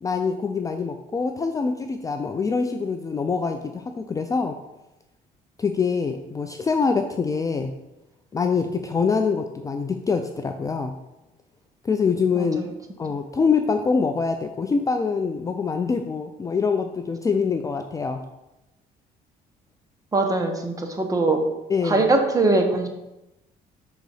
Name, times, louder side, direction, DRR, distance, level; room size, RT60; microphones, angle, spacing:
voice 1, 0.0-4.6 5.6-7.7 8.3-10.9 11.8-12.6 13.0-18.2 21.7-22.1, left 5 dB, 20° left, 6 dB, 0.3 m, -24 dB
voice 2, 12.3-12.7 20.1-21.4 21.8-22.9, right 2 dB, 20° right, 4 dB, 1.0 m, -22 dB
5.5 x 3.9 x 4.8 m, 0.95 s
cardioid pair, 110°, 17 cm